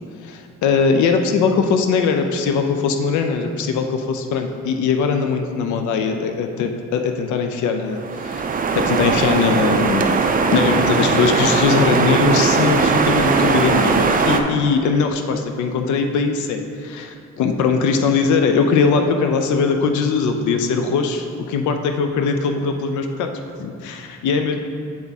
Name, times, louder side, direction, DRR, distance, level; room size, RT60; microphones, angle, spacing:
voice 1, 0.2-8.4 8.7-23.3 23.6-24.6, left 5 dB, 75° left, 6 dB, 0.5 m, -20 dB
sound 1, 8.0-14.4, right 4 dB, 30° right, 0.5 m, -19 dB
8.4 x 3.5 x 4.1 m, 2.3 s
cardioid pair, 90°, 30 cm